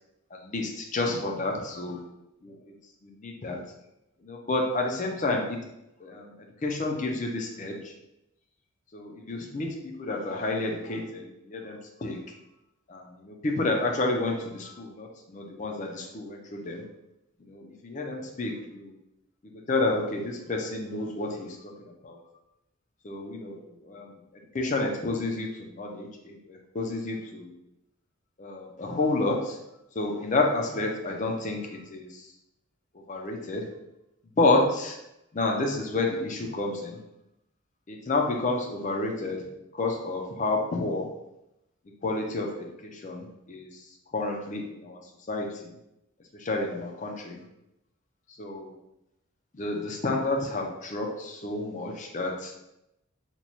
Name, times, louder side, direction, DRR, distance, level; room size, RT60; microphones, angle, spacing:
voice 1, 0.3-2.0 2.4-2.6 3.0-3.6 4.2-5.6 6.0-7.9 8.9-12.2 12.9-16.8 17.4-19.0 19.7-22.2 23.0-23.6 23.8-24.2 24.5-27.6 28.4-29.6 29.9-32.3 33.1-33.7 34.4-35.0 35.3-37.0 37.9-39.4 39.7-41.1 42.0-43.7 44.1-45.0 45.3-45.7 46.3-47.4 48.4-48.7 49.5-52.5, left 2 dB, 35° left, 1 dB, 0.5 m, -30 dB
3.0 x 2.2 x 4.1 m, 0.88 s
head